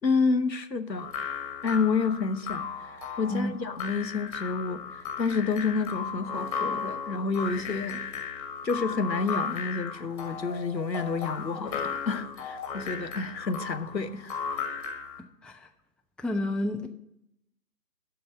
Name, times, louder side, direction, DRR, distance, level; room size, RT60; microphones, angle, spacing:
voice 1, 0.0-1.1 1.6-8.0 8.6-14.4, left 4 dB, 90° left, 1.0 m, -29 dB
sound 1, 1.0-15.2, left 6 dB, 20° left, 1.2 m, -35 dB
voice 2, 16.2-16.9, left 1 dB, ahead, 0.3 m, -30 dB
11.5 x 4.0 x 7.6 m
figure-of-eight pair, 140°, 49 cm